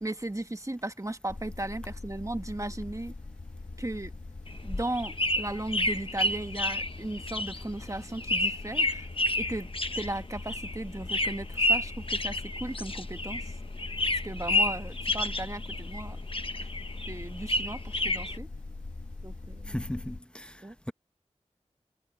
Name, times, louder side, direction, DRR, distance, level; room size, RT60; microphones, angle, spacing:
voice 1, 0.0-3.1 3.8-4.1 4.6-9.1 9.4-9.7 9.9-13.5 14.2-16.2 16.5-16.7 17.1-18.5 19.2-19.7 20.6-20.7, right 1 dB, 25° right, 1.4 m, -36 dB
sound 1, 1.3-20.2, left 3 dB, 90° left, 2.0 m, -42 dB
sound 2, 4.5-13.5 13.8-16.0 16.3-18.4, left 1 dB, 45° left, 1.2 m, -30 dB
voice 2, 19.7-20.5, equal, 10° left, 1.3 m, -36 dB
wide cardioid pair, 55°, 12 cm